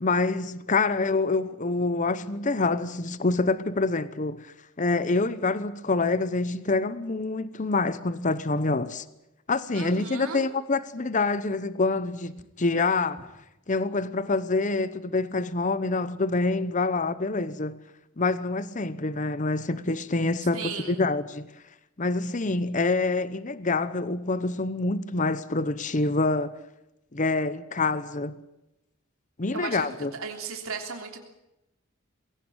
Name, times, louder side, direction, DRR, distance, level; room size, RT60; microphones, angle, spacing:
voice 1, 0.0-9.0 9.5-13.3 13.7-17.8 18.2-21.5 22.0-26.5 27.1-28.3 29.4-30.1, left 3 dB, 35° left, 0.8 m, -26 dB
voice 2, 9.7-10.4 20.5-21.0 29.5-29.9 30.1-31.2, right 5 dB, 85° right, 3.3 m, -35 dB
22.0 x 17.5 x 8.9 m
head